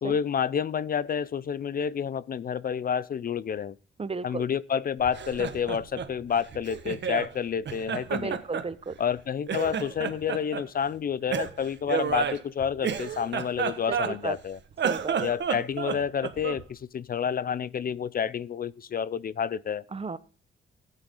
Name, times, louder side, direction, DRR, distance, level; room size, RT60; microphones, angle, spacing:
voice 1, 0.0-3.8 4.2-8.4 9.0-14.6 15.2-19.8, left 7 dB, 50° left, 0.5 m, -29 dB
voice 2, 4.0-4.4 8.1-8.9 13.9-14.3 14.8-15.2 19.9-20.2, right 4 dB, 30° right, 0.8 m, -33 dB
Laughter, 5.0-7.3 7.7-9.2 9.5-10.7 11.3-14.4 14.7-16.7, right 7 dB, 65° right, 1.4 m, -31 dB
14.0 x 9.0 x 3.7 m
cardioid pair, 85°, 20 cm